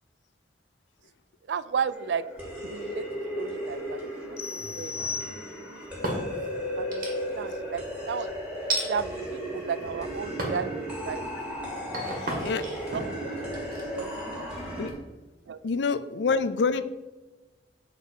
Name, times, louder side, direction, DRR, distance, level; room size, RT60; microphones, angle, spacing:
voice 1, 1.5-2.2 2.6-3.0 3.4-4.0 4.3-5.4 6.8-7.1 7.4-8.3 8.9-10.8 11.0-12.6 12.9-13.1 14.0-14.3 15.5-15.6, right 6 dB, 80° right, 16 dB, 0.4 m, -34 dB
sound 1, 1.9-14.9, equal, 5° right, 2.0 m, -35 dB
sound 2, 4.4-5.9, left 5 dB, 35° left, 0.7 m, -36 dB
sound 3, 4.5-5.3 5.8-6.5 6.9-7.5 8.7-8.9 9.6-10.0 10.4-10.7 11.2-14.9, right 1 dB, 55° right, 1.8 m, -34 dB
voice 2, 12.2-12.6 14.8-14.9 15.6-16.8, left 4 dB, 80° left, 12 dB, 0.5 m, -26 dB
7.2 x 4.0 x 5.4 m, 1.2 s
head